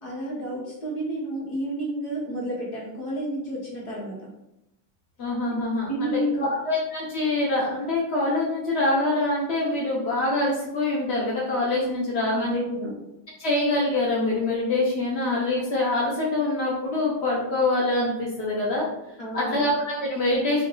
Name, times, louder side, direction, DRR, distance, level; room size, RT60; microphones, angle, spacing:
voice 1, 0.0-4.3 5.9-6.5 12.3-13.0 19.2-19.7, right 1 dB, 30° left, -5 dB, 1.0 m, -30 dB
voice 2, 5.2-6.2 6.7-12.6 13.4-18.9 19.3-20.7, left 2 dB, 70° left, -4 dB, 0.6 m, -25 dB
4.7 x 2.3 x 3.9 m, 0.87 s
omnidirectional pair, 2.2 m